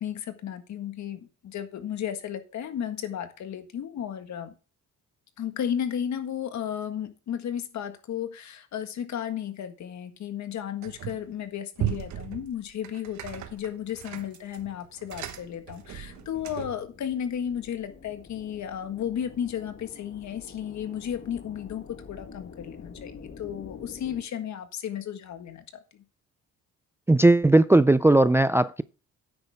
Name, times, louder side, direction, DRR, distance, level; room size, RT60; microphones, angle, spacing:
voice 1, 0.0-4.5 5.4-26.0, left 9 dB, 65° left, 1.6 m, -34 dB
sound 1, 10.8-11.3 11.8-16.9, right 12 dB, 65° right, 1.3 m, -37 dB
sound 2, 14.2-24.2, left 5 dB, 50° left, 2.1 m, -48 dB
voice 2, 27.1-28.8, right 2 dB, 10° right, 0.3 m, -18 dB
9.6 x 8.2 x 3.5 m
cardioid pair, 90°, 30 cm